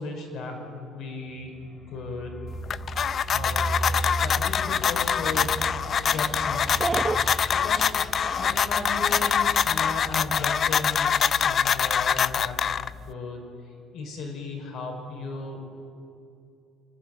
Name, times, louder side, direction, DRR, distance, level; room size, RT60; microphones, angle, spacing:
voice 1, 0.0-1.5 1.9-2.4 3.3-5.6 6.0-7.9 8.4-12.6 13.1-13.4 13.9-15.6, left 3 dB, 60° left, 2 dB, 5.4 m, -36 dB
sound 1, 1.4-11.0 11.3-11.4 11.7-12.1, right 2 dB, 10° left, 2.3 m, -37 dB
sound 2, 2.5-13.1, left 7 dB, 40° left, 0.4 m, -24 dB
Dog, 4.7-9.7, right 4 dB, 25° right, 0.8 m, -36 dB
27.5 x 11.0 x 9.3 m, 2.6 s
cardioid pair, 115°, 0 cm